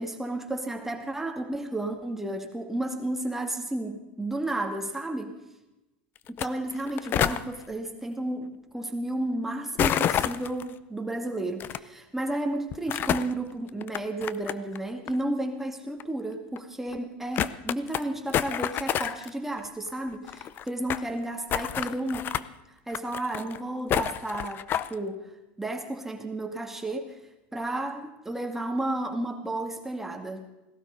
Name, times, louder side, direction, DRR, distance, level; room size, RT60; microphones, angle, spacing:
voice 1, 0.0-5.4 6.3-22.4 22.9-25.3 25.6-27.2 27.5-30.5, right 1 dB, 5° right, 3 dB, 2.1 m, -32 dB
sound 1, 6.3-6.5 6.7-7.4 9.8-10.6 11.6-11.8 12.7-13.3 13.8-14.8 15.1-15.2 16.0-16.1 16.6-16.7 16.9-17.0 17.3-18.0 18.3-19.3 19.6-19.7 19.9-20.0 20.1-21.1 21.5-22.4 22.9-23.6 23.9-24.9, left 10 dB, 40° left, 0.6 m, -28 dB
17.5 x 12.5 x 5.3 m, 0.99 s
supercardioid pair, 105°, 5 cm